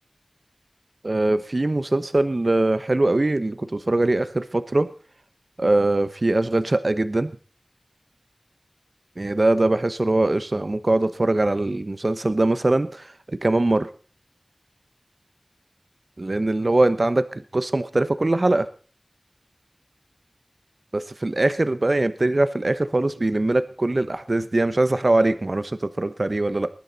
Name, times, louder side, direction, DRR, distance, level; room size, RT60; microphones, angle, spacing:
voice 1, 1.0-4.9 5.6-7.3 9.2-13.9 16.2-18.7 20.9-26.7, right 2 dB, 65° right, 12 dB, 1.1 m, -22 dB
20.0 x 11.5 x 4.1 m, 0.38 s
wide cardioid pair, 40°, 0 cm